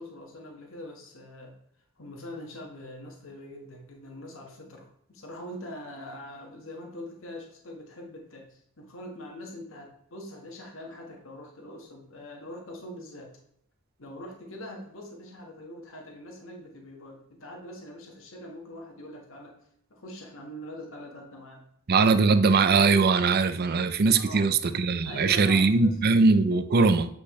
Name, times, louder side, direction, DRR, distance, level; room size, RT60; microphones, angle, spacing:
voice 1, 0.0-1.5 2.0-13.3 14.0-19.6 19.9-21.6 24.1-24.5 25.0-26.2, left 1 dB, 60° left, 1.5 m, -43 dB
voice 2, 21.9-27.1, right 4 dB, 45° right, 0.5 m, -21 dB
8.2 x 5.6 x 3.2 m
head